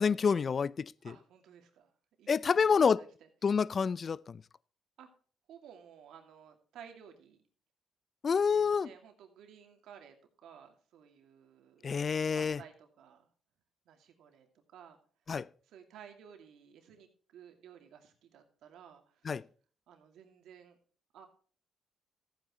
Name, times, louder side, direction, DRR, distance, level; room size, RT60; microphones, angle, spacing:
voice 1, 0.0-0.9 2.3-3.0 3.4-4.4 8.2-8.9 11.8-12.6 15.3-15.5 19.3-19.4, left 6 dB, 45° left, 0.4 m, -28 dB
voice 2, 1.0-1.9 2.2-3.3 5.0-5.1 5.5-7.4 8.4-10.2 10.4-13.3 13.9-15.0 15.6-19.5 19.9-20.8 21.1-21.3, right 8 dB, 80° right, 2.5 m, -55 dB
14.5 x 9.2 x 3.1 m
cardioid pair, 90°, 0 cm